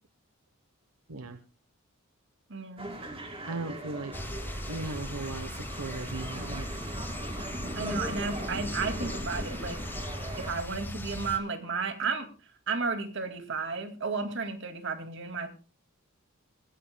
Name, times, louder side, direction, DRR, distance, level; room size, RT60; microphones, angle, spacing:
voice 1, 2.5-3.0 7.7-9.8 10.4-12.3 12.7-15.5, right 4 dB, 60° right, 7 dB, 2.3 m, -33 dB
sound 1, 2.8-10.5, right 1 dB, 25° right, 2.7 m, -39 dB
voice 2, 3.4-4.1 4.7-6.7, right 2 dB, 80° right, 9 dB, 1.1 m, -37 dB
sound 2, 4.1-11.4, left 1 dB, 10° left, 1.4 m, -38 dB
21.5 x 15.5 x 2.3 m, 0.35 s
head